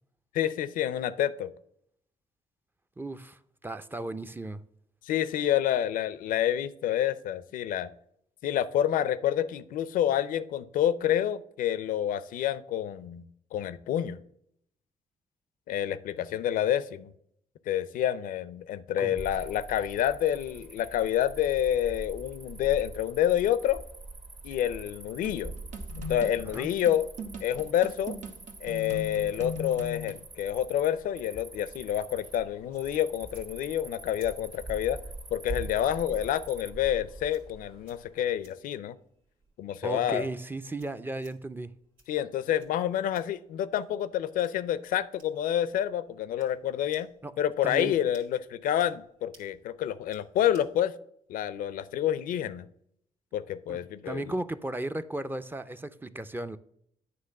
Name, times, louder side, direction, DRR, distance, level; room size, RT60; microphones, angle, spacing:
voice 1, 0.3-1.5 5.0-7.9 8.4-13.2 13.5-14.2 15.7-17.1 17.7-23.8 24.4-25.5 26.0-27.1 27.4-28.1 28.6-35.0 35.3-39.0 39.6-40.3 42.1-47.1 47.4-50.9 51.3-52.7 53.3-54.2, left 11 dB, 85° left, 0.5 m, -28 dB
voice 2, 3.0-4.6 19.0-19.2 26.5-26.7 39.8-41.7 47.2-47.3 47.6-47.9 53.7-53.8 54.0-56.6, right 2 dB, 15° right, 0.5 m, -35 dB
Cricket, 19.2-38.1, right 2 dB, 40° right, 1.3 m, -45 dB
sound 1, 25.2-30.2, left 2 dB, 65° right, 1.0 m, -39 dB
sound 2, 31.7-50.8, right 2 dB, 90° right, 2.1 m, -51 dB
9.4 x 3.3 x 6.4 m
cardioid pair, 70°, 14 cm